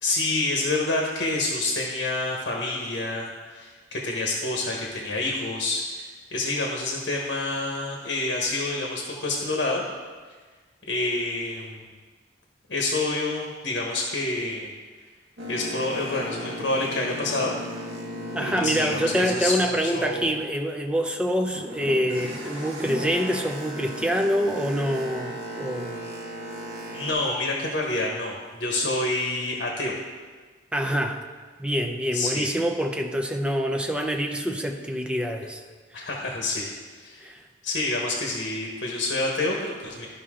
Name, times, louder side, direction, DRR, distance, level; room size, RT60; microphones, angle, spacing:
voice 1, 0.0-9.9 10.9-11.8 12.7-14.7 15.5-17.6 18.4-20.3 26.9-30.0 32.1-32.5 35.9-36.7 37.0-37.3 37.6-40.1, left 2 dB, 65° left, -1 dB, 1.2 m, -28 dB
Boat Water vehicle, 15.4-20.4 20.8-27.1, equal, 65° right, 1.7 m, -36 dB
voice 2, 18.3-26.0 30.7-31.2 31.6-35.6 37.2-37.4, equal, 5° right, 3 dB, 0.6 m, -26 dB
13.5 x 5.6 x 3.7 m, 1.5 s
head